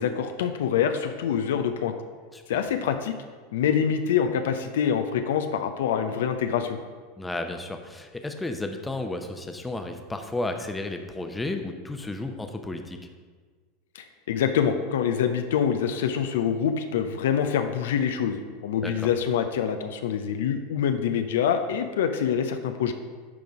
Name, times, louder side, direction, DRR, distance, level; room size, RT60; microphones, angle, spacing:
voice 1, 0.0-1.9 2.5-3.1 3.5-6.8 13.9-22.9, left 8 dB, 70° left, 7 dB, 0.5 m, -25 dB
voice 2, 7.2-13.0 18.8-19.1, left 2 dB, 10° left, 5 dB, 0.8 m, -33 dB
11.0 x 3.8 x 4.8 m, 1.5 s
hypercardioid pair, 85°, 0 cm